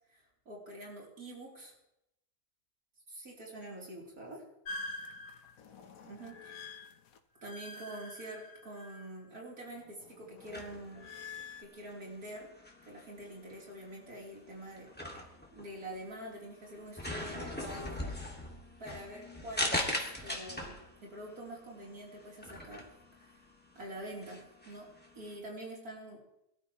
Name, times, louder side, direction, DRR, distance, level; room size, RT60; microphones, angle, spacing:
voice 1, 0.1-1.7 3.1-4.5 6.0-6.7 7.4-11.0 11.6-12.5 12.9-18.1 18.8-20.7 21.0-22.9 23.1-23.4 23.8-24.9 25.2-26.2, right 1 dB, 75° right, -3 dB, 4.0 m, -46 dB
sound 1, 4.7-9.4 9.7-11.6, left 2 dB, 65° left, 1.4 m, -46 dB
sound 2, 10.4-25.4, left 1 dB, 5° left, 2.1 m, -41 dB
23.5 x 13.0 x 3.1 m, 0.82 s
omnidirectional pair, 1.6 m